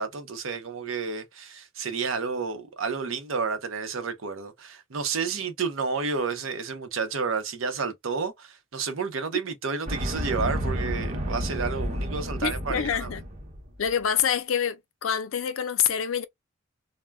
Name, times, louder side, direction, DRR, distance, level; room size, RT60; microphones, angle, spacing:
voice 1, 0.0-13.2, right 5 dB, 75° right, 0.7 m, -31 dB
sound 1, 9.9-13.8, equal, 35° right, 0.7 m, -31 dB
voice 2, 12.4-13.2 13.8-16.2, left 8 dB, 75° left, 0.4 m, -26 dB
2.2 x 2.1 x 3.3 m
head